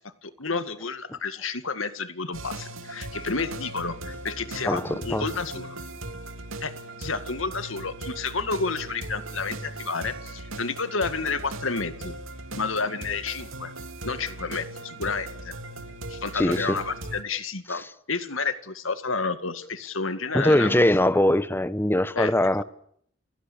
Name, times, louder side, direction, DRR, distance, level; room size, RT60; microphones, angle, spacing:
voice 1, 0.0-5.8 6.6-6.7 7.0-12.2 12.5-13.7 14.0-15.5 16.1-20.8 22.2-22.3, left 4 dB, 80° left, 2.1 m, -30 dB
sound 1, 2.3-17.2, right 2 dB, 85° right, 2.8 m, -38 dB
voice 2, 4.6-5.3 16.3-16.8 17.7-17.8 20.3-22.6, left 1 dB, 10° left, 1.0 m, -22 dB
29.5 x 17.5 x 8.7 m
head